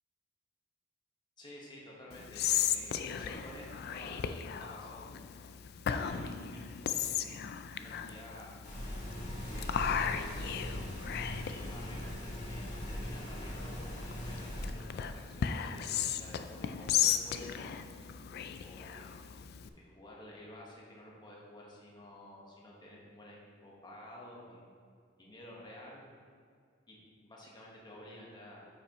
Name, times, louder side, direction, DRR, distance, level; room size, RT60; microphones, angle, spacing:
voice 1, 1.4-5.3 5.9-7.5 7.8-8.5 9.5-11.0 11.4-15.9 16.2-17.8 18.5-19.1 19.7-24.7 25.2-26.0 26.9-28.7, left 1 dB, 25° left, -3 dB, 1.3 m, -51 dB
Whispering, 2.1-19.7, left 8 dB, 55° left, 0.3 m, -36 dB
Weapons handling, 8.6-14.7, equal, 40° left, 1.7 m, -40 dB
8.5 x 5.8 x 3.0 m, 2.1 s
head